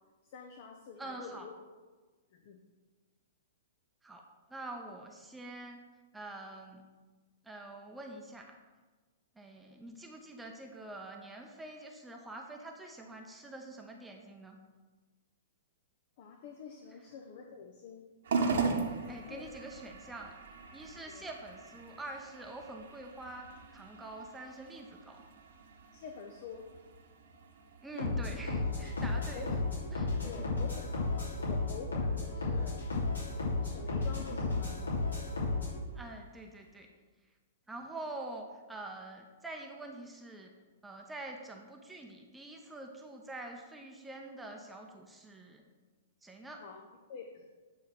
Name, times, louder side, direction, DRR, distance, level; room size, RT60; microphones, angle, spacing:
voice 1, 0.2-1.5 2.3-2.6 16.2-18.1 19.2-19.4 21.1-21.3 25.9-26.7 29.3-29.6 30.2-32.8 33.6-35.0 46.6-47.5, left 5 dB, 50° left, 3 dB, 0.8 m, -47 dB
voice 2, 1.0-1.5 4.0-4.2 4.5-5.8 6.1-6.8 7.4-8.6 9.4-14.6 16.9-17.0 18.7-20.3 20.7-25.2 27.8-29.6 29.9-30.1 35.9-36.9 37.7-40.5 40.8-45.6 46.2-46.6, right 2 dB, 5° right, 2 dB, 0.8 m, -46 dB
sound 1, 18.2-36.9, right 4 dB, 60° right, 1.2 m, -42 dB
sound 2, 28.0-35.7, left 3 dB, 75° left, 2.8 m, -33 dB
9.0 x 4.1 x 6.0 m, 1.4 s
figure-of-eight pair, 110°, 0 cm